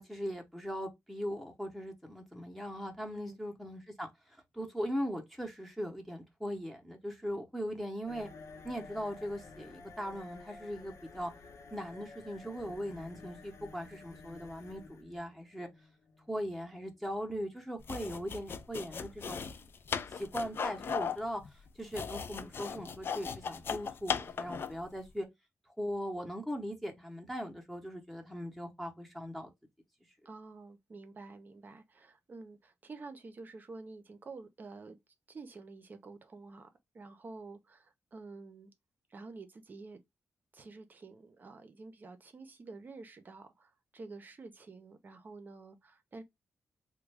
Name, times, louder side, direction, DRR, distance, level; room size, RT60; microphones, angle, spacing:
voice 1, 0.0-4.1 4.5-8.3 8.6-11.3 11.7-15.7 16.3-19.7 20.1-25.3 25.8-29.5, equal, ahead, 0.8 m, -39 dB
sound 1, 8.1-17.7, left 4 dB, 85° left, 0.9 m, -53 dB
sound 2, 17.8-24.9, left 6 dB, 50° left, 0.4 m, -37 dB
voice 2, 30.2-35.0 35.3-36.7 36.9-38.7 39.1-40.0 40.5-46.2, right 3 dB, 40° right, 0.7 m, -49 dB
3.5 x 2.2 x 3.2 m
wide cardioid pair, 130°, 5 cm